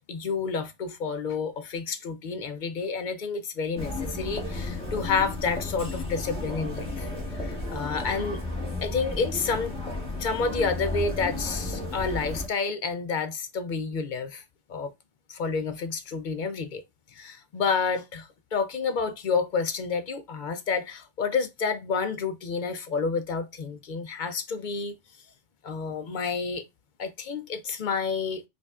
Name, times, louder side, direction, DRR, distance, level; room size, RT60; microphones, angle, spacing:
voice 1, 0.1-7.1 7.4-8.4 8.8-9.7 10.2-14.4 14.7-14.9 15.3-16.8 17.2-24.9 25.6-26.6 27.0-28.4, left 5 dB, 55° left, 0.6 m, -29 dB
sound 1, 3.8-12.5, left 2 dB, 5° left, 1.1 m, -33 dB
4.9 x 2.4 x 2.3 m
omnidirectional pair, 1.2 m